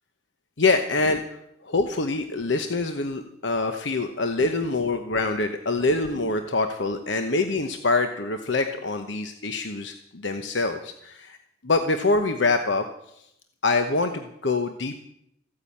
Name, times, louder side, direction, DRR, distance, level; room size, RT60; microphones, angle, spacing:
voice 1, 0.6-1.4 1.6-11.4 11.6-12.9 13.6-14.9, left 3 dB, 65° left, 7 dB, 1.0 m, -25 dB
15.0 x 9.8 x 8.6 m, 0.77 s
head